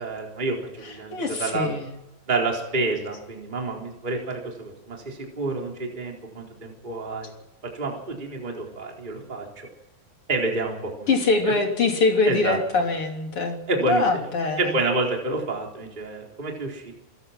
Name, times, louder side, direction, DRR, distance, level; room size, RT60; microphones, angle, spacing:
voice 1, 0.0-1.7 2.3-7.3 7.7-9.5 10.3-11.1 12.2-12.6 13.7-14.0 14.6-16.9, right 3 dB, 10° right, 0 dB, 3.6 m, -28 dB
voice 2, 1.1-1.9 11.1-14.7, left 3 dB, 35° left, 2 dB, 3.4 m, -23 dB
28.5 x 16.0 x 5.9 m, 0.90 s
omnidirectional pair, 5.4 m